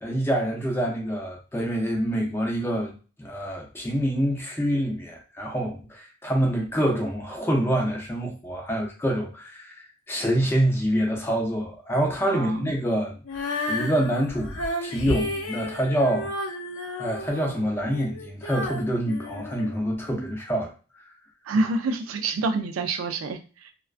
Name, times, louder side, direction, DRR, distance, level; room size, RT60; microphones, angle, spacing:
voice 1, 0.0-16.3 17.0-20.7, right 1 dB, 10° left, 0 dB, 0.5 m, -26 dB
voice 2, 12.3-12.7 21.4-23.7, right 3 dB, 85° right, 6 dB, 0.4 m, -27 dB
Female singing, 13.2-20.3, left 1 dB, 85° left, 0.5 m, -32 dB
2.4 x 2.2 x 2.4 m, 0.35 s
head